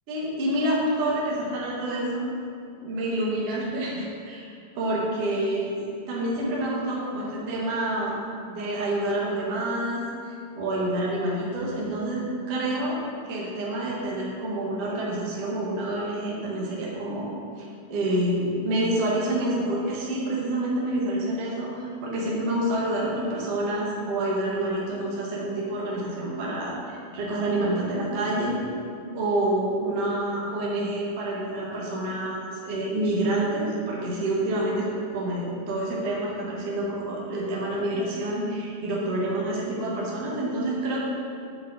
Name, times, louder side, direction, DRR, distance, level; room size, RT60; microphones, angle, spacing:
voice 1, 0.1-2.3 2.7-4.5 4.7-8.2 8.4-10.0 10.5-13.0 13.3-28.6 29.1-41.0, right 1 dB, 85° right, -5 dB, 1.3 m, -28 dB
9.5 x 7.7 x 4.0 m, 2.5 s
omnidirectional pair, 5.3 m